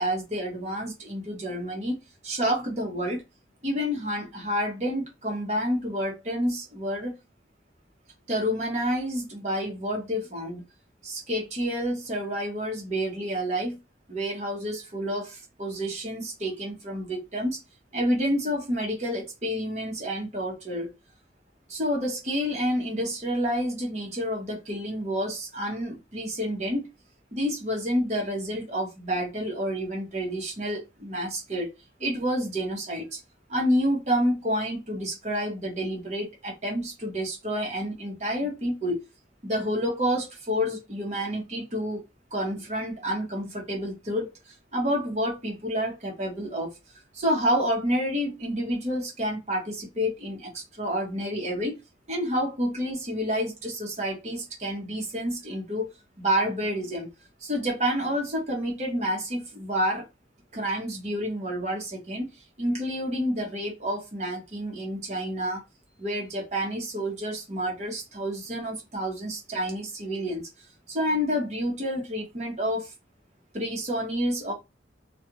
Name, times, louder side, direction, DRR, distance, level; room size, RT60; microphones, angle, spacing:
voice 1, 0.0-2.0 2.2-3.2 3.6-7.1 8.3-10.6 11.0-13.8 14.1-17.6 17.9-20.9 21.7-26.9 27.3-31.7 32.0-33.2 33.5-39.0 39.4-42.0 42.3-46.7 47.1-51.7 52.1-55.9 56.2-57.1 57.4-60.0 60.5-62.3 62.6-65.6 66.0-70.4 70.9-72.9 73.5-74.5, equal, 40° right, 1.0 m, -29 dB
2.4 x 2.4 x 2.9 m
head